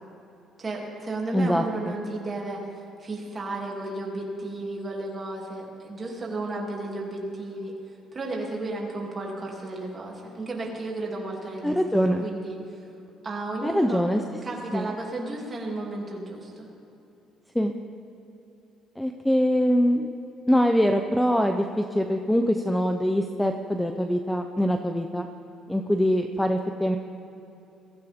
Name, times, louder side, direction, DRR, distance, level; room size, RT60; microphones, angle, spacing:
voice 1, 0.6-2.7 3.0-7.7 8.1-12.8 13.2-14.0 14.4-16.7, right 2 dB, 25° right, -2 dB, 2.7 m, -33 dB
voice 2, 1.3-2.0 11.6-12.3 13.6-14.2 14.7-14.9 17.5-17.7 19.0-20.1 20.5-25.3 25.7-27.0, equal, 5° left, 5 dB, 0.5 m, -23 dB
22.5 x 15.0 x 3.6 m, 2.9 s
cardioid pair, 160°, 0 cm